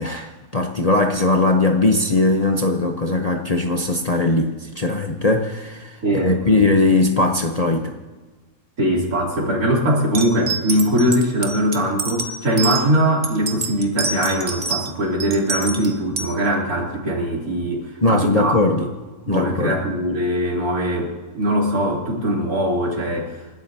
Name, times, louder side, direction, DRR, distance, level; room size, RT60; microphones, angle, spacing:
voice 1, 0.0-5.9 6.2-7.9 18.0-18.8 19.3-19.8, left 2 dB, 35° left, 2 dB, 0.7 m, -19 dB
voice 2, 6.0-6.6 8.8-18.5 19.2-23.3, equal, 75° right, -2 dB, 3.5 m, -21 dB
sound 1, 10.1-12.8 13.2-14.9 15.2-16.3, right 4 dB, 30° right, 1.1 m, -26 dB
28.5 x 12.5 x 2.8 m, 1.3 s
omnidirectional pair, 1.5 m